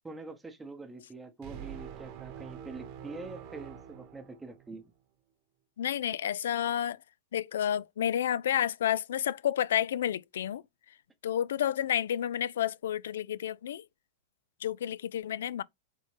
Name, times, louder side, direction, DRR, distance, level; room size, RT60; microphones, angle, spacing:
voice 1, 0.0-4.9, right 3 dB, 10° right, 0.8 m, -45 dB
sound 1, 1.4-4.9, right 9 dB, 45° right, 0.9 m, -45 dB
voice 2, 5.8-7.0 7.3-10.6 11.2-13.8 14.6-15.6, left 10 dB, 80° left, 0.3 m, -30 dB
4.1 x 3.6 x 3.3 m
hypercardioid pair, 135°, 0 cm